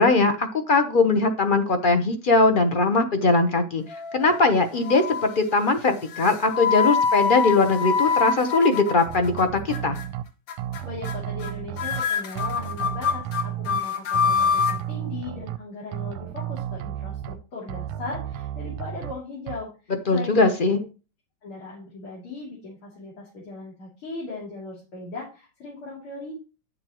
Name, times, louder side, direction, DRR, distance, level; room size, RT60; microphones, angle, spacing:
voice 1, 0.0-3.8 4.1-10.0 20.1-20.8, left 3 dB, 45° left, 7 dB, 0.6 m, -20 dB
sound 1, 3.9-4.5 4.9-5.4 6.1-9.4 9.7-10.1 10.5-10.8 11.1-11.2 11.4-11.5 11.8-14.8, left 6 dB, 65° left, 1.7 m, -25 dB
sound 2, 9.1-10.2 10.6-12.0 12.3-13.8 14.1-15.6 15.9-17.3 17.7-19.1 19.5-19.6, right 12 dB, 90° right, 1.5 m, -33 dB
voice 2, 10.8-20.8 21.4-26.4, left 3 dB, 90° left, -5 dB, 3.8 m, -38 dB
10.5 x 6.9 x 3.0 m, 0.32 s
omnidirectional pair, 2.3 m